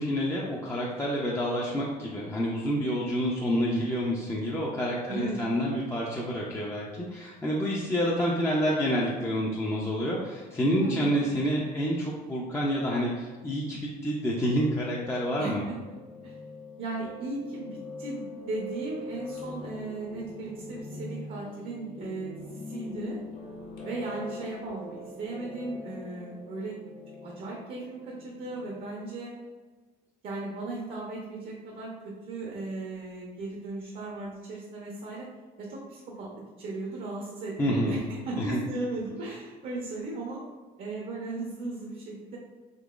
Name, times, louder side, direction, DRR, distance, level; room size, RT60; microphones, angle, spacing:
voice 1, 0.0-15.6 37.6-38.0 38.4-38.7, equal, 15° left, -4 dB, 0.4 m, -28 dB
voice 2, 5.1-5.4 10.8-11.1 15.4-15.8 16.2-16.3 16.8-23.2 23.8-26.8 27.2-29.3 30.2-35.3 35.6-36.3 36.6-40.4 40.8-42.4, right 2 dB, 60° right, -3 dB, 0.7 m, -36 dB
Piano, 14.4-28.8, left 2 dB, 60° left, 1.3 m, -43 dB
3.7 x 2.9 x 2.4 m, 1.3 s
cardioid pair, 110°, 17 cm